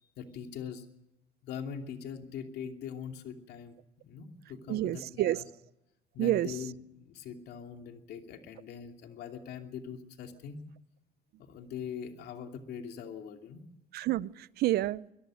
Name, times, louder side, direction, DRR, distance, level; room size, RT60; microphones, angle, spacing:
voice 1, 0.0-0.9 1.4-3.8 4.0-5.4 6.1-10.6 11.4-13.6, left 7 dB, 75° left, 2.7 m, -42 dB
voice 2, 4.7-5.4 6.2-6.5 13.9-15.0, right 15 dB, 70° right, 0.7 m, -29 dB
24.5 x 18.0 x 6.4 m
cardioid pair, 110°, 17 cm